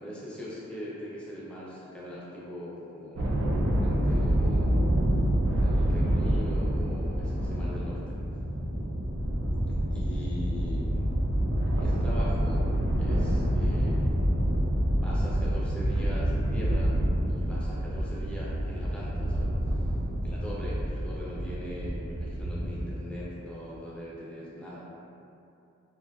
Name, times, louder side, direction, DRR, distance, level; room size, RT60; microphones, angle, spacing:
voice 1, 0.0-3.5 3.8-4.8 5.6-8.2 9.7-11.1 11.8-12.7 13.0-14.2 15.0-19.9 20.2-24.8, equal, 5° left, -7 dB, 0.4 m, -41 dB
sound 1, 3.2-23.0, equal, 80° right, 0.4 m, -27 dB
2.5 x 2.3 x 2.2 m, 2.6 s
head